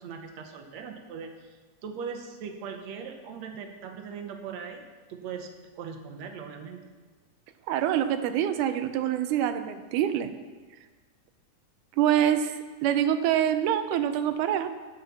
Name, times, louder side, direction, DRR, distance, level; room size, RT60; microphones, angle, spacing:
voice 1, 0.0-6.9, right 6 dB, 70° right, 5 dB, 2.0 m, -40 dB
voice 2, 7.7-10.3 12.0-12.5 12.8-14.7, right 10 dB, 90° right, 9 dB, 2.1 m, -25 dB
11.5 x 5.6 x 7.0 m, 1.4 s
omnidirectional pair, 3.5 m